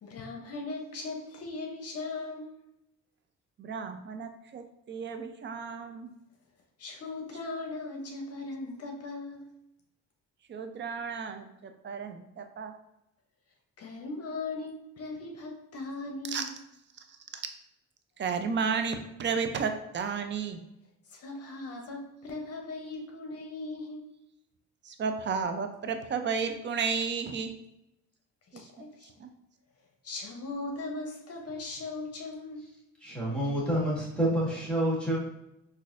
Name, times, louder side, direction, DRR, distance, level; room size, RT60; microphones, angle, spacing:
voice 1, 0.0-2.6 6.8-9.5 13.8-16.5 21.1-24.1 28.5-29.1 30.0-32.6, left 3 dB, 55° left, 1 dB, 0.7 m, -38 dB
voice 2, 3.6-6.1 10.5-12.7 16.3-16.4 17.1-17.4 18.2-20.6 24.8-27.5 28.8-28.9 29.2-29.3, right 5 dB, 40° right, 7 dB, 0.5 m, -33 dB
voice 3, 33.0-35.2, right 1 dB, 5° left, -6 dB, 1.4 m, -28 dB
3.9 x 2.6 x 2.5 m, 0.87 s
cardioid pair, 90°, 30 cm